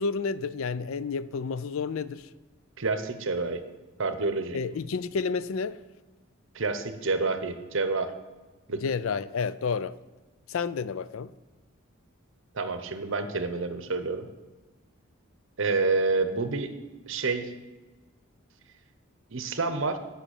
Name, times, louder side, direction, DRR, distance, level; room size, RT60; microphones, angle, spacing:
voice 1, 0.0-2.3 4.5-5.8 8.8-10.0 10.5-11.3, left 5 dB, 70° left, 0.4 m, -30 dB
voice 2, 2.8-3.6 4.0-4.6 6.5-8.1 8.7-8.8 12.5-14.3 15.6-16.7 17.1-17.5 19.3-20.0, right 3 dB, 60° right, 0.9 m, -28 dB
8.9 x 5.8 x 8.2 m
head